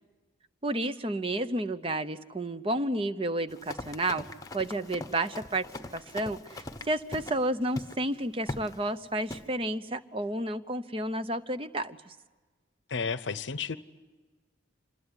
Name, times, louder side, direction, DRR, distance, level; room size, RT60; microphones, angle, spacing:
voice 1, 0.6-4.2 4.5-5.6 5.9-12.1, right 1 dB, 30° right, 11 dB, 0.8 m, -31 dB
Run, 3.5-7.4 7.7-8.0 8.5-8.8 9.3-9.5, left 2 dB, 20° left, 1.0 m, -41 dB
voice 2, 12.9-13.8, left 5 dB, 70° left, 15 dB, 0.7 m, -32 dB
26.5 x 21.0 x 9.7 m, 1.3 s
head